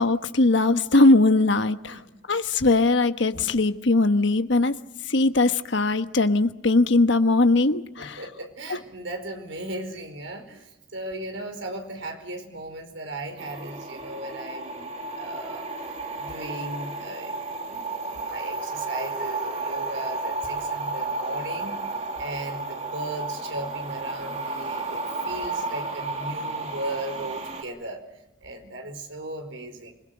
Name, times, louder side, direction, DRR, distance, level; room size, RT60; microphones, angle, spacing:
voice 1, 0.0-2.0 2.3-4.7 5.1-8.2, left 2 dB, 65° left, 1.2 m, -20 dB
voice 2, 8.0-14.9 15.2-15.7 16.2-17.4 17.6-21.7 22.2-29.9, right 1 dB, 75° right, 5.0 m, -37 dB
sound 1, 13.4-27.6, right 3 dB, 35° right, 2.5 m, -32 dB
27.5 x 21.0 x 6.6 m
head